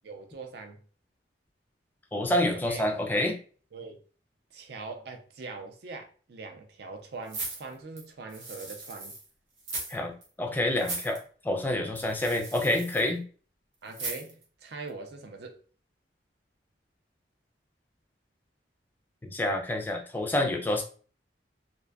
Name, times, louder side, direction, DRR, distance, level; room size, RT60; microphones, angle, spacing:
voice 1, 0.0-0.8 2.5-2.8 3.7-4.0 4.5-9.1 13.8-15.6, right 3 dB, 60° right, 0.4 m, -42 dB
voice 2, 2.1-3.4 9.9-10.1 10.4-11.2 11.4-13.2 19.2-20.8, left 1 dB, 10° left, 0.3 m, -27 dB
sound 1, 7.3-9.2 9.6-10.0 10.2-10.3 10.7-11.2 11.9-13.1 13.9-14.4 14.9-15.0, right 2 dB, 75° right, 0.8 m, -38 dB
2.5 x 2.2 x 2.3 m
head